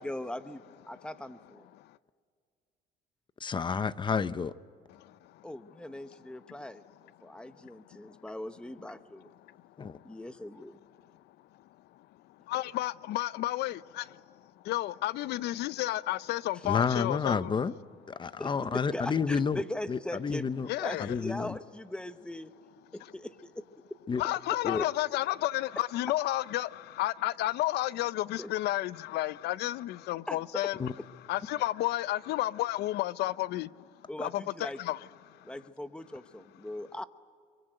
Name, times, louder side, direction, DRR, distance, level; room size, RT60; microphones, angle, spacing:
voice 1, 0.0-1.7 5.4-6.8 7.2-9.3 10.0-10.8 18.4-20.5 20.8-22.5 23.1-23.6 24.7-24.8 28.4-28.5 30.3-30.4 34.1-34.8 35.4-37.0, left 1 dB, 5° left, 1.0 m, -40 dB
voice 2, 3.4-4.5 9.8-10.0 16.7-17.7 18.1-19.6 19.9-20.7 21.0-21.5 24.1-24.2 24.6-24.8 30.8-30.9, left 6 dB, 30° left, 0.7 m, -30 dB
voice 3, 4.9-5.4 6.5-6.6 7.4-8.2 9.4-10.1 11.9-17.5 18.2-18.4 20.7-21.2 24.1-30.8 31.3-35.5, left 16 dB, 75° left, 0.6 m, -32 dB
23.5 x 22.5 x 9.2 m
cardioid pair, 110°, 17 cm